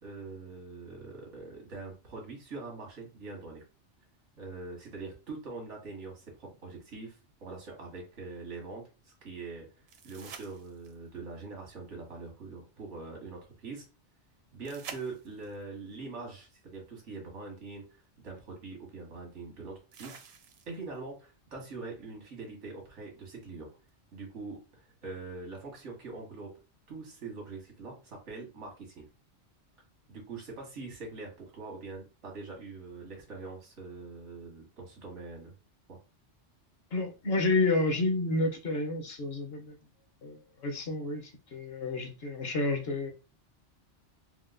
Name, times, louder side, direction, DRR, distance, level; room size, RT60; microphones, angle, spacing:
voice 1, 0.0-3.6 4.4-9.7 10.0-13.8 14.5-20.2 20.7-23.7 24.1-26.5 26.9-29.1 30.1-35.5 35.9-36.0, right 3 dB, 90° right, 0 dB, 1.6 m, -43 dB
sound 1, 9.9-11.2 14.6-15.6 17.5-17.6 19.9-21.0 23.9-24.0, right 6 dB, 70° right, 0.8 m, -48 dB
voice 2, 36.9-39.8 40.2-43.1, left 2 dB, 60° left, 4 dB, 1.0 m, -30 dB
4.5 x 2.2 x 2.4 m, 0.32 s
omnidirectional pair, 1.2 m